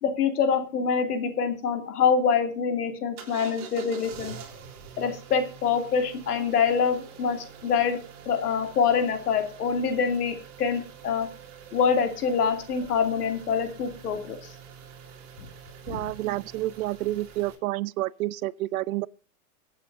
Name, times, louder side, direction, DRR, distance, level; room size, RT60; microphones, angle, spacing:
voice 1, 0.0-4.3 5.0-8.0 8.3-11.3 11.7-14.5 15.9-16.0, left 6 dB, 85° left, 2.7 m, -25 dB
sound 1, 3.2-17.5, right 7 dB, 35° right, 3.7 m, -46 dB
voice 2, 15.9-19.1, right 16 dB, 70° right, 0.7 m, -29 dB
24.0 x 8.6 x 2.6 m
hypercardioid pair, 130°, 45 cm